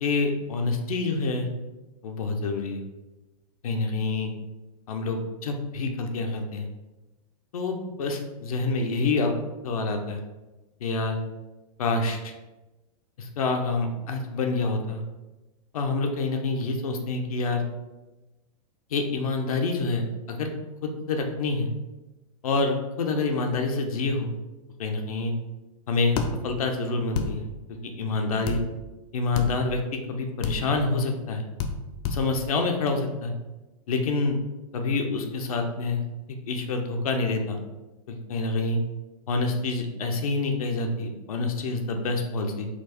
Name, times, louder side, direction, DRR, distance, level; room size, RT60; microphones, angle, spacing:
voice 1, 0.0-1.5 2.0-2.8 3.6-4.3 4.9-6.7 7.5-9.3 9.6-10.2 10.8-11.2 11.8-12.3 13.2-15.0 15.7-17.6 18.9-20.5 20.8-21.7 22.4-24.3 24.8-25.3 25.9-27.5 27.8-28.6 29.1-31.4 32.1-33.3 33.9-34.4 34.7-36.0 36.3-37.6 38.1-38.8 39.3-42.7, left 3 dB, 75° left, 4 dB, 0.8 m, -27 dB
sound 1, 26.2-26.3 27.1-27.3 28.5-28.6 29.3-29.5 30.4-30.6 31.6-31.7 32.0-32.2, left 6 dB, 45° left, 0.5 m, -28 dB
4.3 x 2.4 x 4.3 m, 1.1 s
hypercardioid pair, 120°, 19 cm